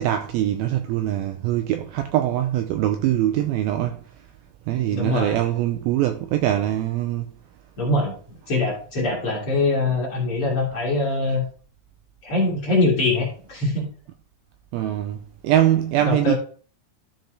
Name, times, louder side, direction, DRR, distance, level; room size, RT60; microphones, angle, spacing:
voice 1, 0.0-4.0 4.7-7.3 14.7-16.3, right 12 dB, 90° right, 2.1 m, -23 dB
voice 2, 4.9-5.4 7.8-8.1 8.5-11.4 12.2-13.9 16.0-16.3, left 2 dB, 40° left, 2.4 m, -23 dB
13.0 x 4.5 x 3.8 m
omnidirectional pair, 4.8 m